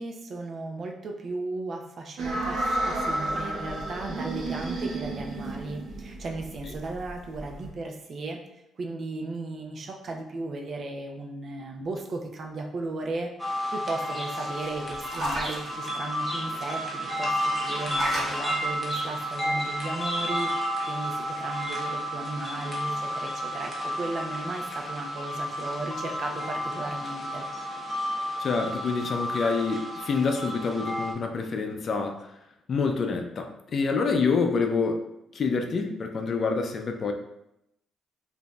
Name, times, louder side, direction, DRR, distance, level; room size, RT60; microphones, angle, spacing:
voice 1, 0.0-8.4 8.8-13.3 13.7-27.5, right 2 dB, 50° right, 2 dB, 0.6 m, -36 dB
sound 1, 2.2-7.7, right 2 dB, 70° right, 0.9 m, -32 dB
sound 2, 13.4-31.1, equal, 5° left, 1.0 m, -31 dB
sound 3, 14.0-15.7 17.3-18.4 19.6-19.7 20.0-20.1, equal, 35° right, 1.3 m, -34 dB
voice 2, 28.4-32.3 32.7-35.0 35.3-37.1, left 4 dB, 50° left, 5 dB, 0.5 m, -27 dB
5.0 x 2.6 x 2.3 m, 0.82 s
cardioid pair, 90°, 0 cm